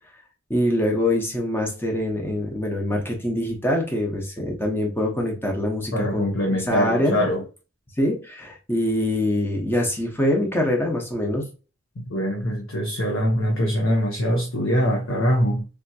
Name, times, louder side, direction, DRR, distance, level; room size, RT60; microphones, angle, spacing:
voice 1, 0.5-7.2 8.0-11.4, left 1 dB, 10° left, 0.8 m, -24 dB
voice 2, 5.9-7.4 12.1-15.7, equal, 85° left, 0.7 m, -23 dB
3.4 x 2.8 x 2.7 m
head